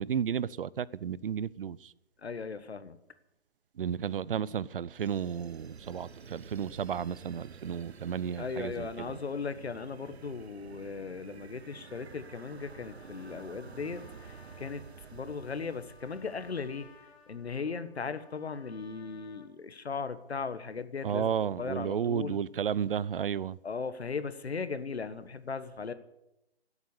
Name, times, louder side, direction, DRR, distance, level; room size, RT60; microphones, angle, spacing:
voice 1, 0.0-1.9 3.8-9.2 21.0-23.6, right 8 dB, 60° right, 0.6 m, -33 dB
voice 2, 2.2-3.0 8.4-14.8 15.1-16.9 17.3-22.4 23.6-25.9, left 5 dB, 80° left, 1.4 m, -37 dB
sound 1, 5.0-17.3, right 6 dB, 80° right, 1.0 m, -50 dB
Trumpet, 11.5-19.5, left 5 dB, 35° left, 2.1 m, -59 dB
16.0 x 8.2 x 9.8 m
figure-of-eight pair, 140°, 32 cm